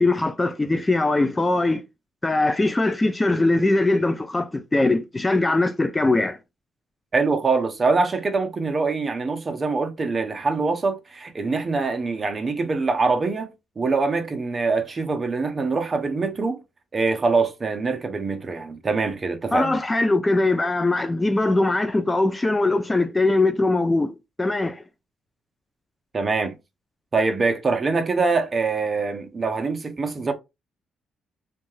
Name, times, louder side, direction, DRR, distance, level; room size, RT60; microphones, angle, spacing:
voice 1, 0.0-1.8 2.2-6.4 19.5-24.8, left 2 dB, 20° left, 0.3 m, -21 dB
voice 2, 7.1-16.6 16.9-19.8 26.1-26.5 27.1-30.3, right 4 dB, 35° right, 0.6 m, -24 dB
2.6 x 2.3 x 3.1 m
cardioid pair, 90°, 0 cm